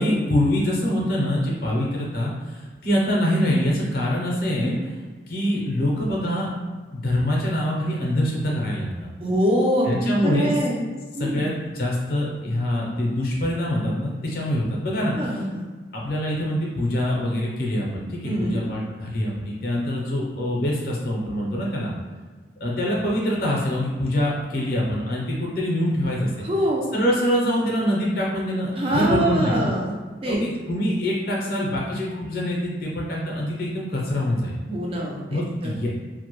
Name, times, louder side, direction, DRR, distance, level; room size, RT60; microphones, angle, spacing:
voice 1, 0.0-4.8 5.3-6.5 6.9-9.1 9.9-10.5 11.2-15.4 15.9-21.9 22.6-26.3 26.9-29.7 30.3-34.5 35.3-35.9, left 1 dB, 50° left, -3 dB, 0.5 m, -24 dB
voice 2, 9.2-10.8 11.2-11.5 15.2-15.6 18.2-18.6 26.4-26.8 28.7-30.0 30.2-30.4 34.7-35.8, right 1 dB, 30° right, -2 dB, 0.4 m, -24 dB
2.1 x 2.1 x 2.9 m, 1.4 s
head